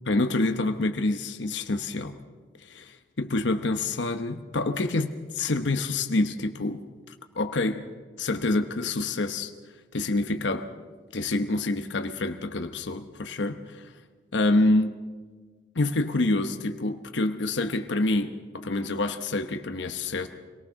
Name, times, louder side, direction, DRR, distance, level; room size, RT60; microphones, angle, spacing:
voice 1, 0.1-2.2 2.6-6.8 7.3-7.8 8.2-9.5 9.9-10.7 11.1-13.9 14.3-14.9 15.7-20.3, left 2 dB, 85° left, 7 dB, 1.0 m, -27 dB
25.5 x 18.5 x 6.4 m, 1.5 s
head